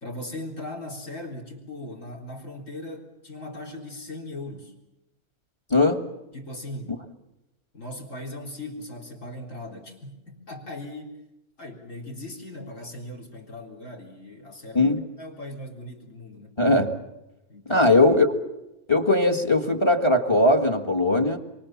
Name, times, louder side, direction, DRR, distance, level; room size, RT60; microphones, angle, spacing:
voice 1, 0.0-4.8 6.3-7.0 7.7-11.1 11.6-16.6 17.5-18.0, left 1 dB, 55° left, 4 dB, 4.2 m, -39 dB
voice 2, 5.7-6.1 14.7-15.0 16.6-17.0 17.7-18.4 18.9-21.4, left 2 dB, 20° left, 7 dB, 1.8 m, -20 dB
27.5 x 23.5 x 7.3 m, 0.97 s
omnidirectional pair, 1.6 m